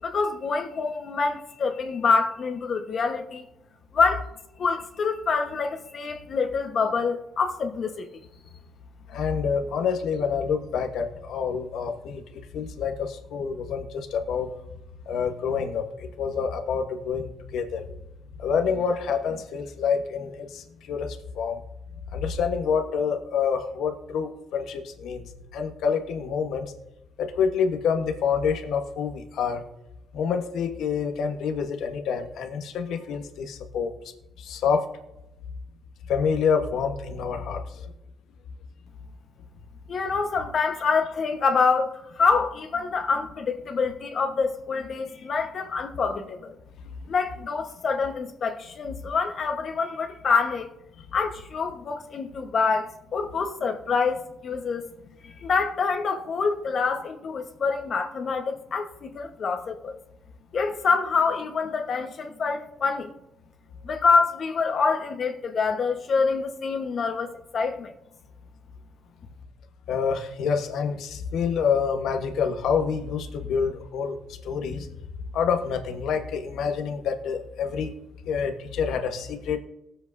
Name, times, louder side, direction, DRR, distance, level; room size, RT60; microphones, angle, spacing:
voice 1, 0.0-3.4 3.9-4.3 4.6-8.1 39.9-46.5 47.1-50.7 51.1-54.9 55.2-60.0 60.5-63.1 63.8-67.9, left 5 dB, 50° left, 1.1 m, -26 dB
voice 2, 9.1-14.5 15.1-17.9 18.4-21.6 22.1-25.2 25.5-26.7 27.2-29.6 30.1-33.9 34.4-34.9 36.1-37.9 47.0-47.1 69.9-74.9 75.3-77.9 78.3-79.6, left 6 dB, 80° left, 1.2 m, -27 dB
18.5 x 7.9 x 2.7 m
cardioid pair, 90°, 0 cm